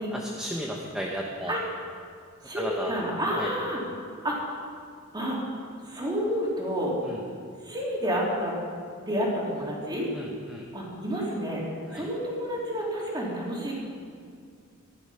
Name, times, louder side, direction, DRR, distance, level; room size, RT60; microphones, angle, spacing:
voice 1, 0.1-1.6 2.6-3.0 3.4-3.5 7.0-7.1 10.1-10.6 11.9-12.0, equal, 5° right, -2 dB, 1.1 m, -34 dB
voice 2, 2.4-3.8 4.2-4.6 5.1-5.4 5.8-7.0 7.6-8.5 9.0-10.1 10.7-11.6 11.9-13.7, equal, 20° right, -4 dB, 3.2 m, -29 dB
15.0 x 11.0 x 5.7 m, 2.3 s
head